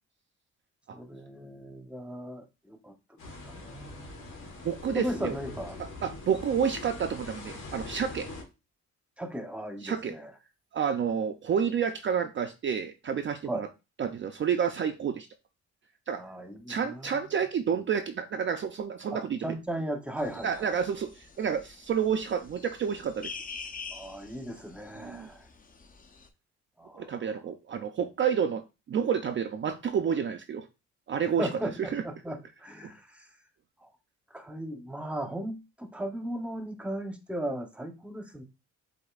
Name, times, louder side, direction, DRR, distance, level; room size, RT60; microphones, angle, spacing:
voice 1, 0.9-3.2 3.4-4.1 4.9-5.8 9.2-10.3 13.5-13.7 16.1-17.3 19.1-20.7 23.9-25.5 26.8-27.1 31.4-33.3 33.8-33.9 34.3-38.4, right 1 dB, 5° right, 0.8 m, -37 dB
sound 1, 3.2-8.4, left 2 dB, 80° left, 1.5 m, -42 dB
voice 2, 4.6-5.3 6.0-8.3 9.8-10.2 10.7-13.7 14.0-15.3 16.1-16.2 16.7-19.5 20.4-23.3 25.0-25.3 26.9-28.6 28.9-30.7 31.1-32.0, right 7 dB, 40° right, 0.5 m, -29 dB
sound 2, 20.2-26.3, left 5 dB, 25° left, 0.7 m, -46 dB
7.7 x 2.7 x 2.4 m
cardioid pair, 90°, 30 cm